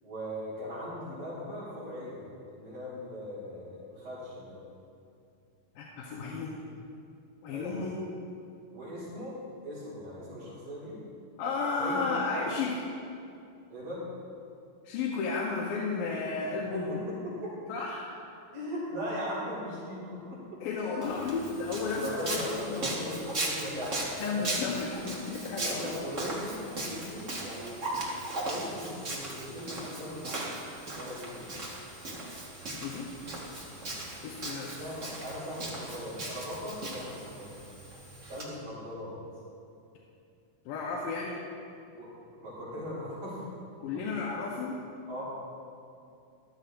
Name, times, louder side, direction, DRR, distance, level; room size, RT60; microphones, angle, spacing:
voice 1, 0.0-2.2 2.6-4.5 7.5-7.8 8.7-10.9 11.8-12.1 13.7-14.0 16.9-17.5 18.5-20.6 21.2-21.5 22.0-24.6 25.6-27.8 28.3-30.4 31.0-31.4 34.8-37.6 38.3-39.1 41.9-42.1 42.4-43.5 43.9-44.0 45.1-45.2, equal, 85° right, -12 dB, 5.0 m, -39 dB
voice 2, 5.8-6.6 7.4-8.0 11.4-12.8 14.8-17.0 17.7-18.1 20.6-23.3 24.2-25.9 32.8-33.1 34.2-34.8 40.7-41.4 43.8-44.8, left 4 dB, 85° left, -3 dB, 2.6 m, -33 dB
Walk footsteps, 21.0-38.4, right 2 dB, 60° right, 0.8 m, -38 dB
14.5 x 13.0 x 2.5 m, 2.6 s
omnidirectional pair, 3.9 m